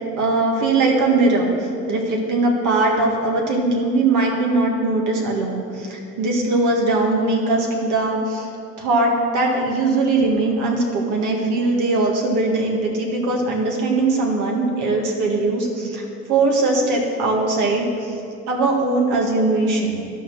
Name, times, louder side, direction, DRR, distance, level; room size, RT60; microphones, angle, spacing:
voice 1, 0.2-8.5 8.8-16.0 16.3-18.1 18.5-20.0, right 2 dB, 85° right, 0 dB, 1.8 m, -20 dB
11.0 x 6.4 x 6.2 m, 2.5 s
cardioid pair, 90°, 30 cm